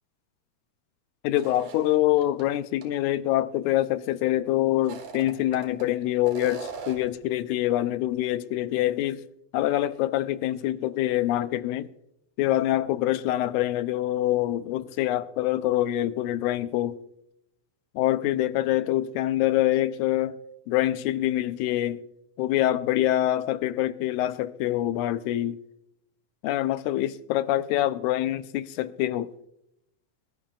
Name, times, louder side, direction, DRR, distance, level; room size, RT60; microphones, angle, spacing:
voice 1, 1.2-9.2 9.5-11.9 12.4-17.0 18.0-20.4 20.7-22.0 22.4-25.6 26.4-29.3, left 14 dB, 85° left, 2.1 m, -25 dB
sound 1, 1.4-2.4 2.8-2.9 4.7-5.9 6.2-7.2, right 6 dB, 85° right, 2.9 m, -40 dB
22.5 x 11.5 x 2.4 m
omnidirectional pair, 3.4 m